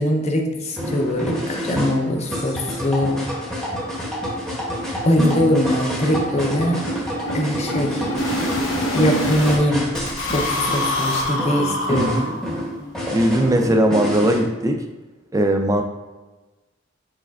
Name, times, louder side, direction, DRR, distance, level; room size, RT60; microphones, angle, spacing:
voice 1, 0.0-3.2 5.0-6.9 7.3-8.1 8.9-9.9 10.3-12.1, left 1 dB, 35° left, 3 dB, 0.5 m, -21 dB
sound 1, 0.8-14.4, equal, 5° left, 0.8 m, -28 dB
sound 2, 2.7-2.8 3.1-3.2 3.5-3.6 3.9-4.1 4.4-9.6 9.9-12.7, equal, 80° left, 0.7 m, -27 dB
voice 2, 11.6-12.4 13.1-14.8 15.3-15.8, right 1 dB, 15° right, 4 dB, 0.3 m, -20 dB
4.7 x 4.2 x 2.3 m, 1.2 s
head